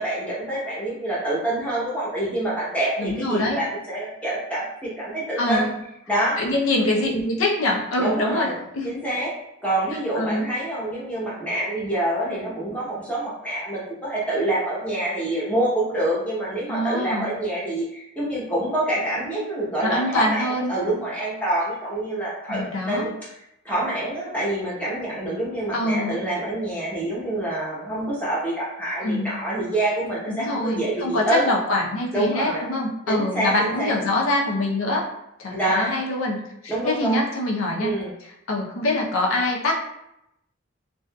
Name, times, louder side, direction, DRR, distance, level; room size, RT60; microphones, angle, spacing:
voice 1, 0.0-5.7 6.1-6.4 8.0-8.6 8.8-9.3 9.6-23.1 23.6-31.5 32.1-32.6 33.1-34.0 35.5-35.9 36.7-37.3 37.8-38.1, right 1 dB, 5° left, -7 dB, 0.8 m, -26 dB
voice 2, 3.0-3.6 5.4-5.7 6.4-8.5 8.7-9.0 10.2-10.5 16.7-17.3 19.8-20.7 22.5-23.1 25.7-26.2 29.0-29.4 30.3-35.1 35.4-37.9 38.5-39.8, left 2 dB, 75° left, -1 dB, 0.6 m, -24 dB
2.6 x 2.3 x 2.2 m, 0.82 s
head